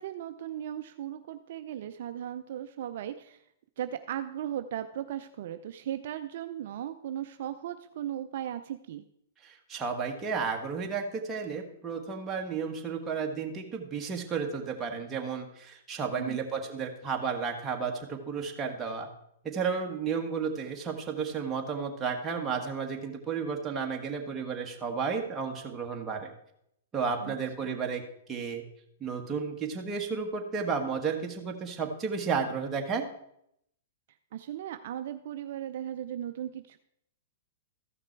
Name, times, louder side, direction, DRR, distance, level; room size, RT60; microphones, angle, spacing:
voice 1, 0.0-3.4 3.8-9.0 16.2-16.4 27.2-27.3 34.3-36.8, right 11 dB, 60° right, 9 dB, 0.5 m, -37 dB
voice 2, 9.4-19.1 19.4-26.3 26.9-28.0 28.3-28.6 29.0-33.1, right 5 dB, 20° right, 1 dB, 1.5 m, -32 dB
14.0 x 5.9 x 4.5 m, 0.75 s
hypercardioid pair, 135°, 0 cm